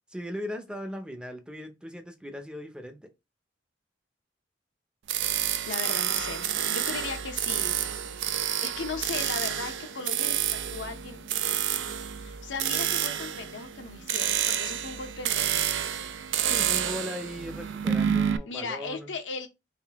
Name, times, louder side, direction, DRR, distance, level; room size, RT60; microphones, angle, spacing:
voice 1, 0.1-3.0 16.4-19.1, equal, 5° right, 0.5 m, -38 dB
sound 1, 5.1-18.4, right 9 dB, 80° right, 0.4 m, -29 dB
voice 2, 5.7-7.8 8.6-11.3 12.2-15.6 18.5-19.5, left 4 dB, 85° left, 0.7 m, -37 dB
3.7 x 2.6 x 3.4 m
head